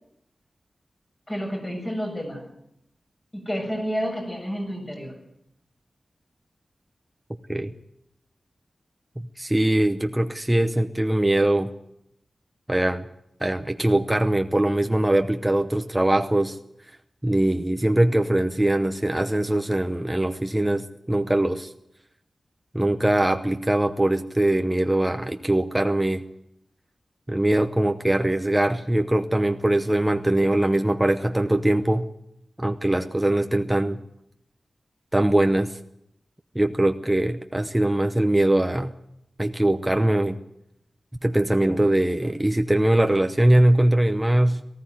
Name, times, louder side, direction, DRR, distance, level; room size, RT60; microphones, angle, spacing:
voice 1, 1.3-2.5 3.3-5.1, equal, 20° left, 1 dB, 7.2 m, -30 dB
voice 2, 9.4-11.7 12.7-13.1 13.4-16.6 17.2-21.7 22.7-26.2 27.3-32.1 32.6-34.0 35.1-35.8 36.5-38.9 39.4-40.4 41.2-44.6, right 1 dB, 10° right, 6 dB, 0.9 m, -22 dB
18.5 x 15.0 x 9.3 m, 0.78 s
wide cardioid pair, 120°, 0 cm